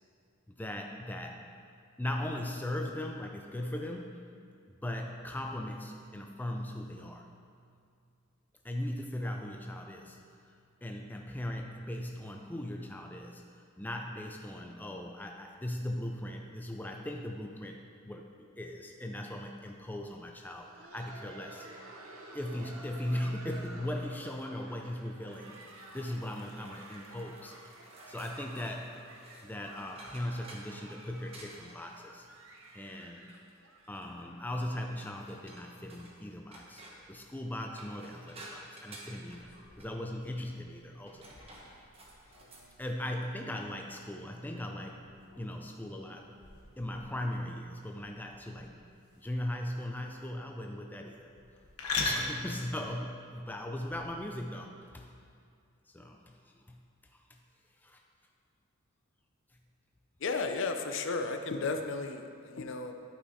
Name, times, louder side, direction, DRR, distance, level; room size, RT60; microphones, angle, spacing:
voice 1, 0.5-1.5 2.0-4.3 4.8-7.3 8.6-21.7 22.3-25.6 25.9-27.8 28.1-29.0 29.4-32.3 32.7-33.3 33.9-39.5 39.8-41.4 42.8-45.1 45.4-46.3 46.8-48.9 49.2-51.3 52.0-55.2 55.9-56.8 57.1-57.4 57.8-58.0, left 1 dB, 10° left, 2 dB, 0.4 m, -39 dB
Laughter, 20.5-36.0 36.3-36.4 37.0-37.1 37.6-37.8 38.9-39.0, right 2 dB, 70° right, 0.8 m, -52 dB
sound 1, 25.3-34.2 35.0-36.2 36.5-37.1 37.6-39.9 40.9-42.7, right 1 dB, 25° right, 1.1 m, -54 dB
sound 2, 39.2-54.3, left 3 dB, 90° left, 1.2 m, -43 dB
voice 2, 60.2-62.9, left 3 dB, 55° left, 6 dB, 0.5 m, -34 dB
11.5 x 5.4 x 4.2 m, 2.4 s
head